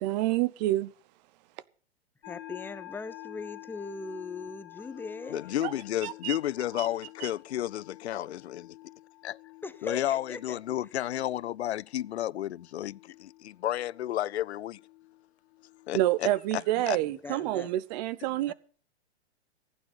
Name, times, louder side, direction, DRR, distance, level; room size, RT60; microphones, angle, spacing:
voice 1, 0.0-0.9 5.6-5.7 6.0-6.4 6.8-6.9 7.2-7.3 15.9-18.5, right 15 dB, 40° right, 0.8 m, -28 dB
sound 1, 2.2-16.1, left 17 dB, 45° left, 1.7 m, -49 dB
voice 2, 2.2-5.4 9.6-10.6 17.0-17.7 18.5-18.6, left 3 dB, 5° left, 0.7 m, -40 dB
voice 3, 5.3-8.8 9.2-9.4 9.8-14.8 15.9-16.3 16.5-17.0, left 12 dB, 75° left, 0.5 m, -32 dB
15.0 x 9.2 x 5.7 m
hypercardioid pair, 120°, 33 cm